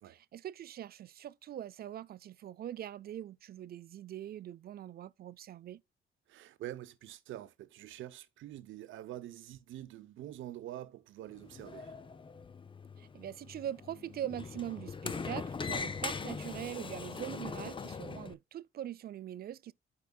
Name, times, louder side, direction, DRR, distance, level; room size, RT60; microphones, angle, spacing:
voice 1, 0.0-5.8 13.0-19.7, right 11 dB, 50° right, 0.4 m, -42 dB
voice 2, 6.3-12.0, right 13 dB, 80° right, 0.8 m, -46 dB
Sliding door, 11.3-18.3, left 5 dB, 25° left, 0.6 m, -41 dB
12.0 x 4.8 x 2.3 m
cardioid pair, 90°, 20 cm